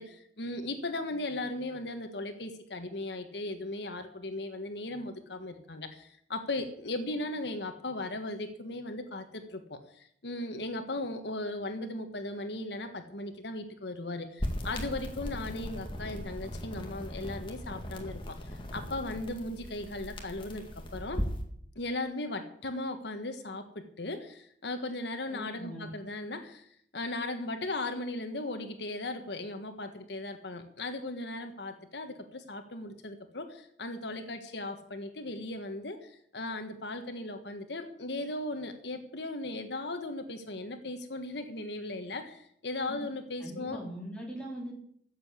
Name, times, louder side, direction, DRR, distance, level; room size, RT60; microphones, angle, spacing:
voice 1, 0.0-21.2 21.7-43.8, left 2 dB, 70° left, 7 dB, 1.4 m, -37 dB
sound 1, 14.4-21.4, equal, 25° left, 2.0 m, -38 dB
voice 2, 25.3-25.9 42.9-43.0 43.4-44.7, equal, 5° left, -3 dB, 3.9 m, -41 dB
14.5 x 7.8 x 8.4 m, 0.66 s
head